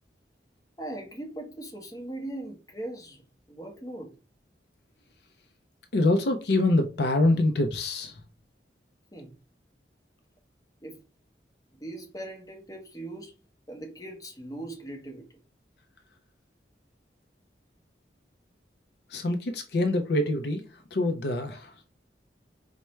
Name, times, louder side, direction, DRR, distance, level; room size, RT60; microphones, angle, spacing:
voice 1, 0.8-4.2 9.1-9.4 10.8-11.0 11.7-13.3 13.7-15.4, right 1 dB, 20° left, 0.9 m, -40 dB
voice 2, 5.9-8.2 19.1-20.6 20.9-21.7, left 2 dB, 65° left, 0.5 m, -25 dB
4.4 x 2.2 x 3.0 m
head